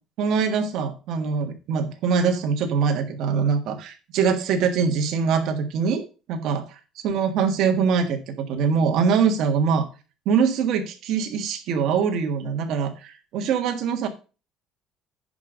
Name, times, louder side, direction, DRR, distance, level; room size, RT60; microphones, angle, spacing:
voice 1, 0.2-6.7 7.0-9.8 10.2-14.1, right 6 dB, 55° right, 6 dB, 1.6 m, -23 dB
10.5 x 5.3 x 5.1 m, 0.33 s
cardioid pair, 180°, 0 cm